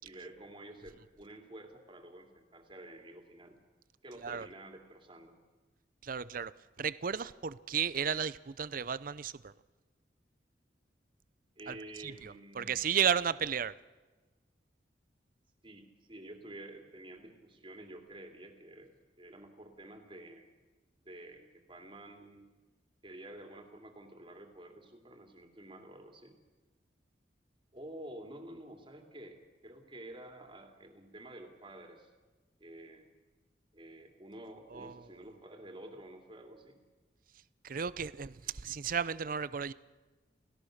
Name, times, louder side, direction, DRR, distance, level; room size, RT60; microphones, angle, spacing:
voice 1, 0.0-3.6 4.0-5.4 11.6-12.8 15.6-20.5 21.0-22.5 23.0-26.4 27.7-32.1 32.6-33.1 33.7-36.8 38.4-38.6, right 1 dB, 30° right, 4 dB, 2.8 m, -50 dB
voice 2, 6.0-6.5 6.8-9.5 11.7-13.7 34.7-35.1 37.6-39.7, right 7 dB, 50° right, 17 dB, 0.6 m, -34 dB
29.5 x 16.5 x 6.6 m, 1.3 s
head